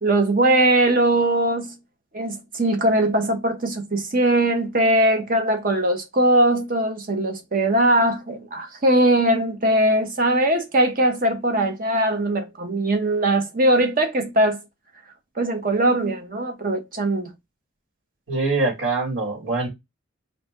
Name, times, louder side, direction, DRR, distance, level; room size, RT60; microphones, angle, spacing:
voice 1, 0.0-1.8 2.1-14.6 15.4-17.3, right 1 dB, 45° right, 0.8 m, -20 dB
voice 2, 18.3-19.7, right 3 dB, 65° right, 2.1 m, -23 dB
4.0 x 2.6 x 3.6 m
head